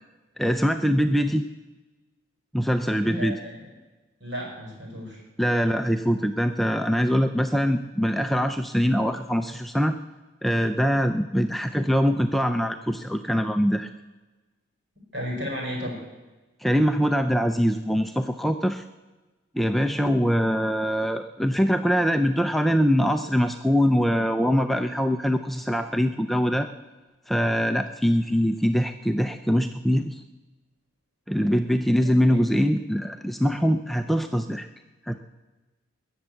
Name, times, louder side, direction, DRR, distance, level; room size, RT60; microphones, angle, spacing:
voice 1, 0.4-1.5 2.5-3.4 5.4-10.0 10.4-13.9 16.6-18.8 19.5-26.7 27.3-30.2 31.3-34.7 35.1-35.2, equal, ahead, 6 dB, 0.4 m, -23 dB
voice 2, 3.0-3.6 4.2-5.2 15.1-16.0 31.3-31.5 32.0-32.5, equal, 60° right, -1 dB, 5.9 m, -34 dB
20.5 x 7.2 x 8.2 m, 1.2 s
head